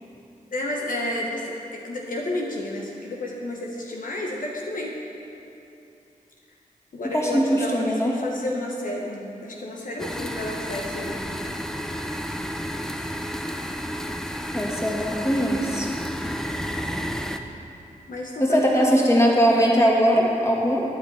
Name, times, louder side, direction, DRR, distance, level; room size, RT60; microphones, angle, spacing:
voice 1, 0.5-4.9 6.9-11.4 18.1-18.8, left 1 dB, 75° left, -1 dB, 1.2 m, -31 dB
voice 2, 7.1-8.1 14.5-15.9 18.4-20.8, equal, 20° left, -3 dB, 2.3 m, -20 dB
sound 1, 10.0-17.4, equal, 5° left, 0.7 m, -31 dB
11.5 x 9.6 x 4.8 m, 2.8 s
cardioid pair, 50°, 14 cm